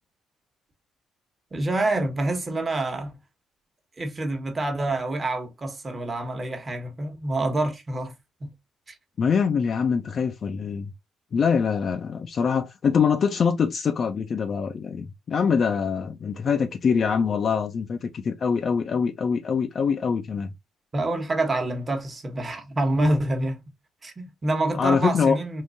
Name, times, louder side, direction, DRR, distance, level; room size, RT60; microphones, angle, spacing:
voice 1, 1.5-3.1 4.0-8.1 8.4-8.5 8.9-9.0 20.9-23.6 24.0-25.6, right 2 dB, 30° right, 1.1 m, -27 dB
voice 2, 9.2-10.9 11.3-20.5 24.8-25.4, left 6 dB, 50° left, 0.4 m, -24 dB
3.7 x 2.6 x 2.5 m
cardioid pair, 90°, 0 cm